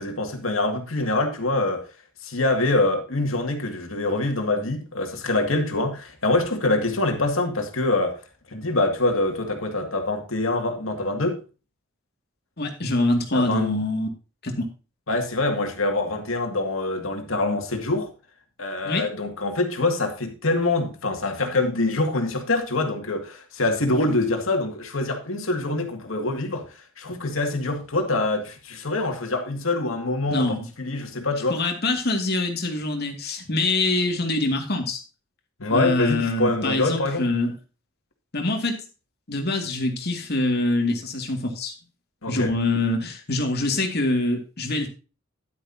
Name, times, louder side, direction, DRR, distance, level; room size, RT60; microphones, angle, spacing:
voice 1, 0.0-1.8 2.2-8.2 8.5-11.4 13.3-13.8 15.1-18.1 18.6-26.7 27.0-31.6 35.6-37.3 42.2-42.5, left 2 dB, 85° left, 2.2 m, -25 dB
voice 2, 12.6-14.1 14.4-14.7 18.8-19.1 30.3-30.7 31.5-35.0 35.7-37.5 38.3-38.8 39.3-41.7 42.3-44.9, left 2 dB, 55° left, 2.3 m, -24 dB
11.0 x 10.0 x 2.8 m
head